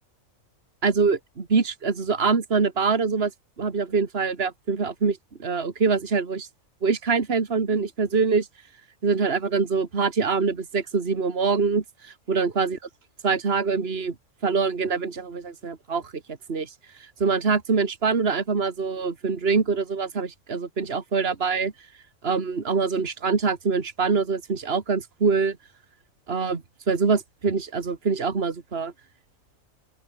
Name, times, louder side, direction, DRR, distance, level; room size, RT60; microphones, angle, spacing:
voice 1, 0.8-3.3 3.6-6.5 6.8-8.5 9.0-12.8 13.2-14.1 14.4-16.7 17.0-21.7 22.2-25.6 26.3-28.9, right 5 dB, 50° right, 2.3 m, -24 dB
open air
omnidirectional pair, 1.4 m